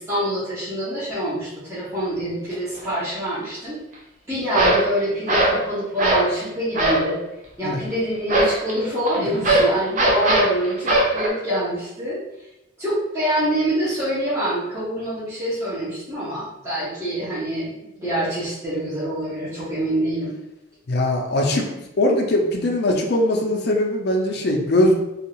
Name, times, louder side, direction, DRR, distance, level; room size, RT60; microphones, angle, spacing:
voice 1, 0.0-3.8 4.3-7.2 7.6-12.2 12.8-20.3, equal, 15° right, -13 dB, 0.8 m, -25 dB
sound 1, 2.8-3.0 4.5-4.9 5.3-5.6 6.0-6.3 6.7-7.1 8.3-11.3, right 1 dB, 40° right, 0.5 m, -19 dB
voice 2, 9.2-9.5 20.9-24.9, left 1 dB, 50° left, 1 dB, 0.5 m, -21 dB
2.6 x 2.4 x 2.9 m, 0.93 s
head